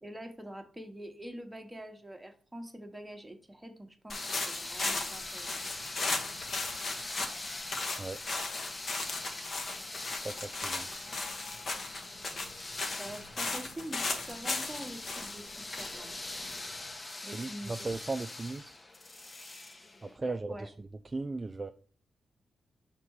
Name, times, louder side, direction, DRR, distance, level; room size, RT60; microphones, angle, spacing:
voice 1, 0.0-5.6 13.0-16.2 17.2-17.8 20.2-20.7, right 1 dB, 10° right, 1.0 m, -45 dB
sound 1, 4.1-16.9, left 3 dB, 50° left, 1.0 m, -37 dB
sound 2, 4.1-20.2, left 2 dB, 25° left, 0.6 m, -43 dB
voice 2, 10.2-10.9 17.3-18.7 20.0-21.7, right 3 dB, 25° right, 0.3 m, -37 dB
5.9 x 3.6 x 4.6 m
cardioid pair, 100°, 0 cm